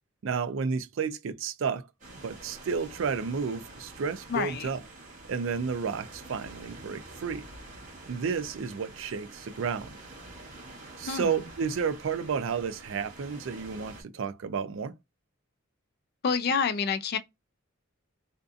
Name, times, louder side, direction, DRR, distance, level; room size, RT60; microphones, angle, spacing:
voice 1, 0.2-1.9 2.2-4.8 5.3-7.4 8.1-10.0 11.0-14.9, right 6 dB, 65° right, 0.4 m, -31 dB
sound 1, 2.0-14.0, right 2 dB, 35° right, 1.1 m, -47 dB
voice 2, 4.3-4.7 11.1-11.5 16.2-17.2, left 6 dB, 45° left, 0.4 m, -28 dB
2.6 x 2.4 x 2.4 m
head